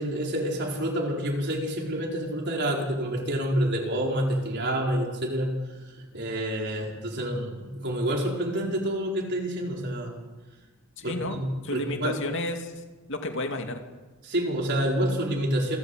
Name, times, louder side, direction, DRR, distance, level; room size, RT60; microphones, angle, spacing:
voice 1, 0.0-5.5 6.0-10.1 11.0-12.2 14.2-15.8, right 1 dB, 50° right, 0 dB, 4.7 m, -28 dB
voice 2, 11.0-12.7 13.1-13.8, left 1 dB, 60° left, 4 dB, 2.5 m, -31 dB
28.0 x 12.5 x 8.2 m, 1.2 s
head